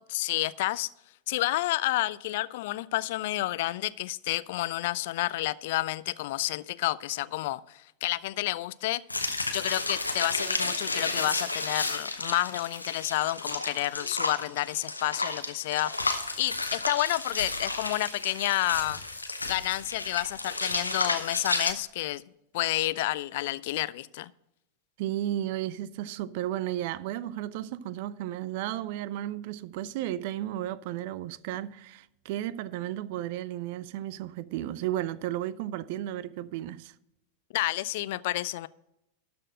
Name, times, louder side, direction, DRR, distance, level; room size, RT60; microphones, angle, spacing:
voice 1, 0.1-0.9 1.3-9.0 9.5-15.9 16.4-19.0 19.4-22.2 22.5-24.3 37.5-38.7, left 17 dB, 50° left, 0.3 m, -30 dB
sound 1, 9.1-21.7, left 2 dB, 80° left, 1.0 m, -32 dB
voice 2, 25.0-36.9, right 13 dB, 50° right, 0.4 m, -33 dB
12.5 x 4.3 x 7.6 m
figure-of-eight pair, 90°, 0 cm